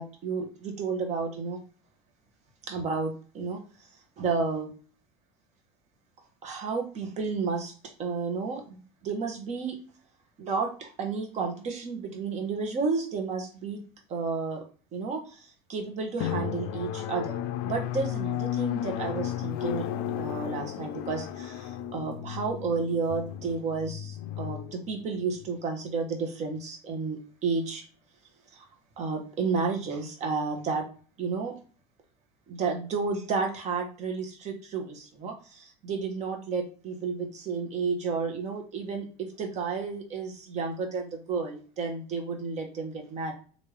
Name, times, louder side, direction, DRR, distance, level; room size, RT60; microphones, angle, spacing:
voice 1, 0.0-1.6 2.7-3.6 4.2-4.7 6.4-7.7 8.0-9.8 10.4-13.8 14.1-14.6 14.9-19.9 20.2-27.8 28.5-28.7 29.0-30.9 31.2-31.6 32.5-43.3, right 4 dB, 40° right, 3 dB, 1.0 m, -32 dB
Drum, 16.2-25.5, left 11 dB, 65° left, 0.4 m, -34 dB
3.3 x 2.6 x 3.2 m, 0.39 s
cardioid pair, 130°, 18 cm